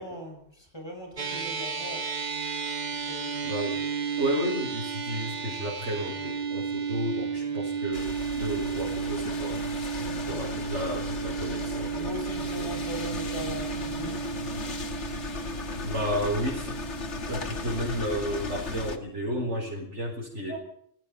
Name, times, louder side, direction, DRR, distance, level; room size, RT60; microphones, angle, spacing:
voice 1, 0.0-2.1 2.9-3.5 10.0-10.6 11.9-14.4 20.5-20.6, equal, 20° left, 2 dB, 5.8 m, -40 dB
sound 1, 1.2-19.7, right 6 dB, 40° right, 1.3 m, -34 dB
voice 2, 3.4-3.8 4.2-9.6 10.3-12.1 12.6-12.7 15.8-16.9 17.3-20.6, equal, 90° right, -4 dB, 5.9 m, -32 dB
sound 2, 7.9-19.0, left 4 dB, 80° left, 2.2 m, -36 dB
28.5 x 19.5 x 5.4 m, 0.68 s
omnidirectional pair, 1.2 m